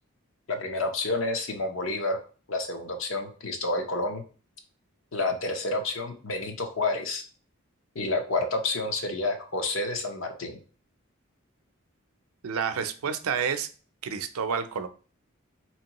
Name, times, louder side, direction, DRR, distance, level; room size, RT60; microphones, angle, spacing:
voice 1, 0.5-2.2 2.5-4.2 5.1-7.2 7.9-10.6, left 2 dB, 65° left, 5 dB, 0.7 m, -29 dB
voice 2, 12.4-13.7 14.0-14.9, right 6 dB, 85° right, 10 dB, 0.5 m, -29 dB
4.4 x 3.0 x 2.9 m, 0.38 s
head